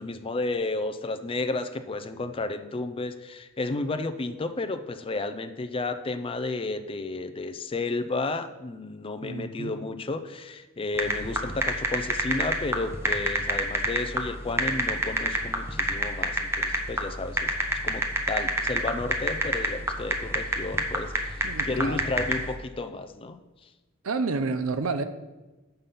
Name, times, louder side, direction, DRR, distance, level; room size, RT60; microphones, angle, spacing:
voice 1, 0.0-17.5 17.8-23.4, left 2 dB, 25° left, 9 dB, 0.4 m, -32 dB
voice 2, 9.2-9.7 21.4-22.0 24.0-25.0, right 4 dB, 85° right, 10 dB, 0.6 m, -30 dB
sound 1, 11.0-22.5, right 2 dB, 10° right, 0.8 m, -26 dB
6.8 x 5.4 x 5.7 m, 1.2 s
head